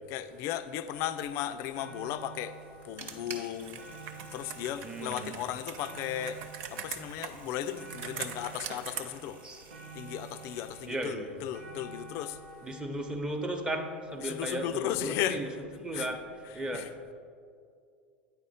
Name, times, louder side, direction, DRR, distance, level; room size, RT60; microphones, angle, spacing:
voice 1, 0.1-4.0 4.3-9.4 9.9-12.5 14.2-15.6 15.9-16.1 16.4-16.9, left 11 dB, 50° left, 0.4 m, -36 dB
sound 1, 1.0-1.1 1.5-14.6 15.4-15.5, right 4 dB, 75° right, 1.3 m, -50 dB
sound 2, 2.4-10.9, right 4 dB, 35° right, 1.1 m, -51 dB
Computer keyboard, 3.6-9.0, right 8 dB, 55° right, 0.6 m, -42 dB
voice 2, 4.8-5.3 9.4-9.6 10.9-11.5 12.6-15.5 15.8-16.2 16.5-17.0, right 1 dB, 15° right, 0.9 m, -35 dB
9.2 x 4.2 x 5.5 m
hypercardioid pair, 90°, 6 cm